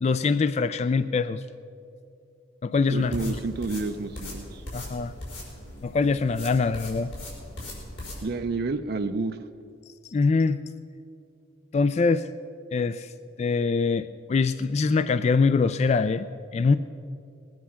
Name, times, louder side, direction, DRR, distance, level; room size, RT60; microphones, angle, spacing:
voice 1, 0.0-1.4 2.6-3.4 4.7-5.1 5.8-7.1 10.1-10.6 11.7-12.3 12.7-13.1 13.4-16.3 16.5-16.8, left 4 dB, 35° left, 13 dB, 0.3 m, -23 dB
sound 1, 2.9-8.2, left 1 dB, 75° left, 4.5 m, -39 dB
voice 2, 2.9-4.6 8.2-9.4, right 3 dB, 55° right, 8 dB, 0.5 m, -30 dB
20.0 x 9.6 x 5.7 m, 2.6 s
head